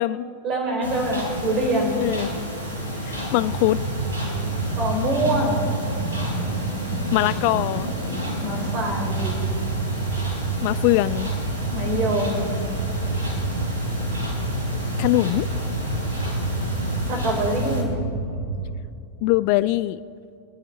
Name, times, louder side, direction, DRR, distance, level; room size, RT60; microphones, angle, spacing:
voice 1, 0.4-2.0 4.8-5.7 8.4-9.4 11.7-12.6 17.1-18.0, right 1 dB, 30° right, 1 dB, 4.3 m, -25 dB
sound 1, 0.8-17.8, equal, 70° right, 3.6 m, -31 dB
voice 2, 3.1-3.8 7.1-7.9 10.6-11.3 15.0-15.5 19.2-20.0, left 18 dB, 45° left, 17 dB, 0.3 m, -22 dB
sound 2, 3.3-18.8, right 3 dB, 90° left, 3.4 m, -29 dB
25.5 x 10.5 x 4.3 m, 2.5 s
figure-of-eight pair, 90°, 0 cm